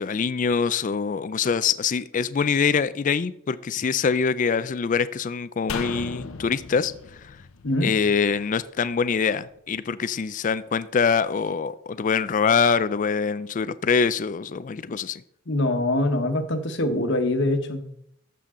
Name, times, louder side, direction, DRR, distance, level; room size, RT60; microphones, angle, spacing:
voice 1, 0.0-6.9 7.2-7.4 7.8-15.2, left 6 dB, 40° left, 15 dB, 0.4 m, -24 dB
sound 1, 5.7-9.0 9.3-9.4, left 4 dB, 85° left, 0.7 m, -36 dB
voice 2, 15.5-17.9, left 1 dB, 60° left, 8 dB, 1.2 m, -24 dB
13.0 x 7.0 x 3.7 m, 0.72 s
head